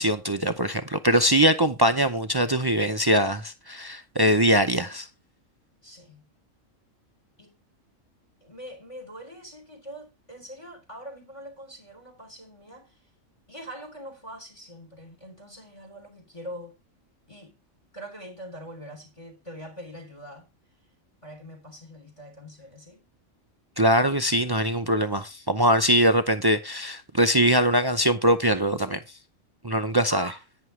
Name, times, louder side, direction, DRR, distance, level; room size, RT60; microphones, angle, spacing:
voice 1, 0.0-5.1 23.8-29.0 29.6-30.3, equal, 35° right, 0.4 m, -22 dB
voice 2, 5.8-6.3 7.4-7.6 8.4-13.0 13.5-16.7 17.3-17.6 17.9-20.5 21.2-23.0 30.1-30.4, right 1 dB, 25° left, 3.5 m, -43 dB
11.0 x 9.5 x 3.2 m
omnidirectional pair, 1.4 m